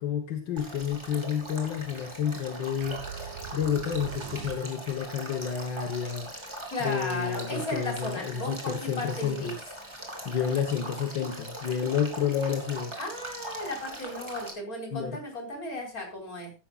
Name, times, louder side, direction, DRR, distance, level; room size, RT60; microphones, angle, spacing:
voice 1, 0.0-3.0 3.5-9.5 10.2-13.0 14.9-15.2, left 8 dB, 55° left, 5 dB, 1.3 m, -30 dB
Male speech man speaking / Stream / Trickle dribble, 0.6-14.5, right 1 dB, 10° right, 3.0 m, -41 dB
sound 1, 2.8-5.1, right 8 dB, 70° right, 1.6 m, -41 dB
voice 2, 6.7-9.5 13.0-16.5, left 1 dB, 25° left, 1 dB, 4.5 m, -35 dB
15.0 x 12.5 x 2.5 m, 0.28 s
omnidirectional pair, 3.6 m